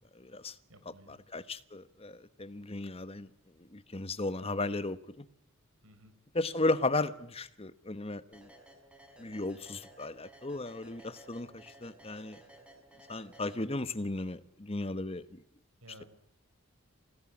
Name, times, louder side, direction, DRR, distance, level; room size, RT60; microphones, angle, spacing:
voice 1, 0.1-0.6 1.1-3.3 3.6-5.2 6.3-8.5 9.2-12.4 13.1-15.4, left 2 dB, 25° left, 1.2 m, -35 dB
voice 2, 0.7-1.2 5.8-6.1 15.8-16.1, right 1 dB, 75° right, 4.5 m, -55 dB
sound 1, 8.3-14.1, right 1 dB, 5° right, 5.0 m, -56 dB
27.5 x 18.0 x 9.9 m
head